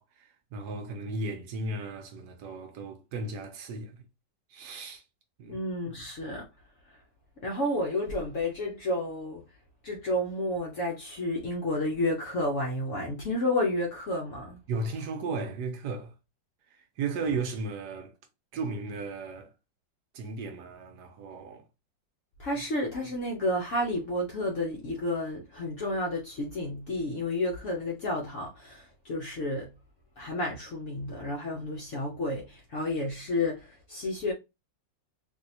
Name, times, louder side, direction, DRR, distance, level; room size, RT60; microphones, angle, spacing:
voice 1, 0.0-4.0 4.5-5.0 5.4-5.6 14.7-16.1 16.7-18.1 18.5-19.5 20.1-21.6, right 3 dB, 70° right, 1.1 m, -35 dB
voice 2, 5.5-6.5 6.9-7.0 7.4-9.4 9.8-14.6 22.4-29.8 30.2-34.3, left 1 dB, 60° left, 0.8 m, -31 dB
3.6 x 2.7 x 2.7 m
omnidirectional pair, 2.0 m